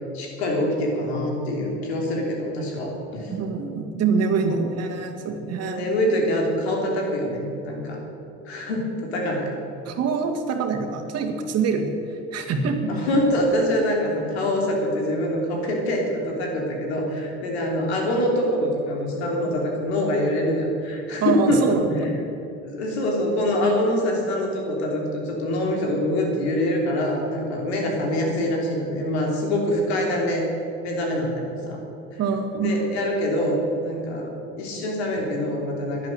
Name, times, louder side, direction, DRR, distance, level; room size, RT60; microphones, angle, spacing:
voice 1, 0.1-3.4 5.6-8.0 8.4-9.5 12.9-21.6 22.6-30.4 30.8-31.8 32.1-32.2 32.5-34.3 34.6-36.1, left 1 dB, 85° left, 0 dB, 3.2 m, -24 dB
voice 2, 3.3-5.9 9.9-13.0 21.2-22.1 32.2-32.7, right 5 dB, 50° right, 3 dB, 2.1 m, -25 dB
11.0 x 11.0 x 7.8 m, 3.0 s
hypercardioid pair, 80°, 32 cm